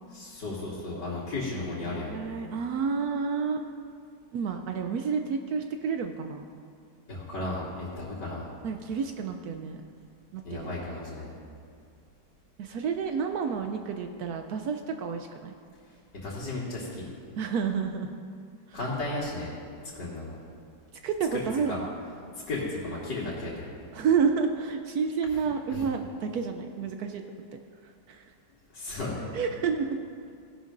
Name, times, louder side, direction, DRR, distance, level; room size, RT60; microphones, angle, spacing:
voice 1, 0.1-2.2 7.1-8.5 10.4-11.3 16.2-17.0 18.7-19.5 19.9-20.3 21.3-21.8 22.5-23.7 25.7-25.8 28.7-29.3, left 2 dB, 75° left, -9 dB, 2.6 m, -34 dB
voice 2, 1.8-3.7 4.3-6.4 8.6-9.8 10.3-10.8 12.6-15.5 17.4-18.1 18.7-18.8 21.0-21.9 23.9-27.2 28.1-28.2 29.3-30.0, right 6 dB, 70° right, 5 dB, 1.0 m, -30 dB
17.0 x 11.0 x 2.6 m, 2.3 s
omnidirectional pair, 1.9 m